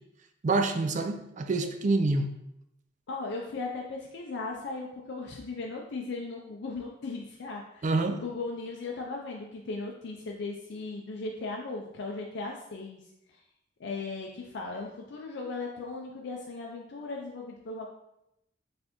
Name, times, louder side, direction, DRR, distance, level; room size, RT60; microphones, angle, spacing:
voice 1, 0.4-2.3 7.8-8.2, right 3 dB, 40° right, 7 dB, 0.4 m, -27 dB
voice 2, 3.1-13.0 13.8-17.9, left 3 dB, 65° left, 0 dB, 0.4 m, -37 dB
4.3 x 3.3 x 2.9 m, 0.83 s
head